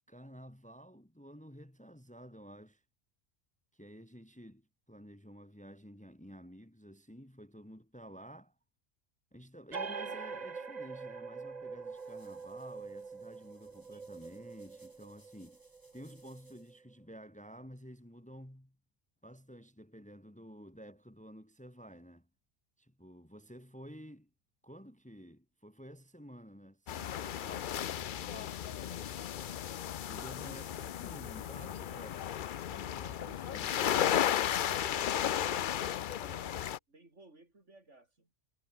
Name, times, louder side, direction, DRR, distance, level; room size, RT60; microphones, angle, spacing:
voice 1, 0.1-2.8 3.7-8.5 9.3-15.6 15.9-18.8 19.2-22.3 22.8-24.3 24.6-28.6 30.0-32.3 32.6-33.9, equal, 5° left, 1.7 m, -52 dB
sound 1, 9.7-16.9, right 4 dB, 35° right, 1.2 m, -44 dB
sound 2, 11.4-16.8, equal, 15° right, 6.4 m, -68 dB
sound 3, 26.9-36.8, left 10 dB, 55° left, 0.6 m, -34 dB
voice 2, 28.4-29.7 30.4-30.7 32.9-38.3, right 2 dB, 75° right, 5.0 m, -59 dB
omnidirectional pair, 1.3 m